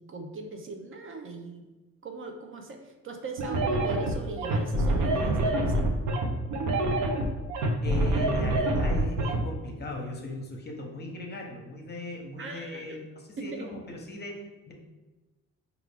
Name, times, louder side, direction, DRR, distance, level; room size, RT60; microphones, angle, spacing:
voice 1, 0.0-1.6 2.0-5.8 12.4-13.0 13.4-13.8, right 3 dB, 45° right, 3 dB, 0.6 m, -40 dB
sound 1, 3.4-9.4, right 1 dB, 90° right, 0.7 m, -26 dB
voice 2, 7.8-14.4 14.7-14.8, left 2 dB, 35° left, 1 dB, 0.8 m, -38 dB
4.7 x 2.4 x 3.4 m, 1.1 s
cardioid pair, 90°, 30 cm